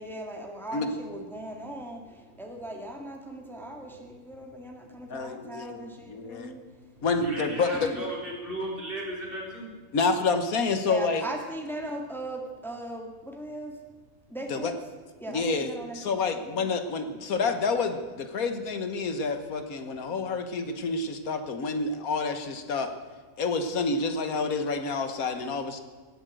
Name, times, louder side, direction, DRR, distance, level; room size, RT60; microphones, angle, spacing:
voice 1, 0.0-6.6 7.7-8.0 10.8-13.8 14.3-14.7 15.2-16.4, right 1 dB, ahead, 2 dB, 1.9 m, -38 dB
voice 2, 5.1-6.5 7.0-7.9 9.9-11.2 14.5-14.7 15.3-15.7 15.9-22.9 23.4-25.8, left 4 dB, 85° left, 8 dB, 1.7 m, -28 dB
voice 3, 7.1-9.7, right 1 dB, 40° right, -3 dB, 4.2 m, -35 dB
18.0 x 9.0 x 7.7 m, 1.4 s
omnidirectional pair, 1.5 m